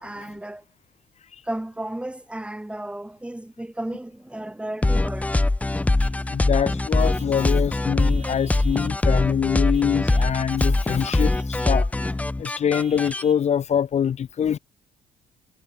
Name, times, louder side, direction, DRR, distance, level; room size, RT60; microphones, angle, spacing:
voice 1, 0.0-0.6 1.4-5.4 6.1-6.3, right 1 dB, 5° right, 2.5 m, -34 dB
speech music, 4.8-13.2, left 2 dB, 10° left, 0.4 m, -22 dB
Vehicle horn car horn honking / Truck, 6.0-6.3 7.0-7.4 8.0-9.0 9.7-10.4 11.2-11.9 12.7-13.5, right 7 dB, 45° right, 3.3 m, -48 dB
voice 2, 6.3-11.9 12.4-14.6, left 8 dB, 45° left, 0.8 m, -24 dB
cardioid pair, 95°, 16 cm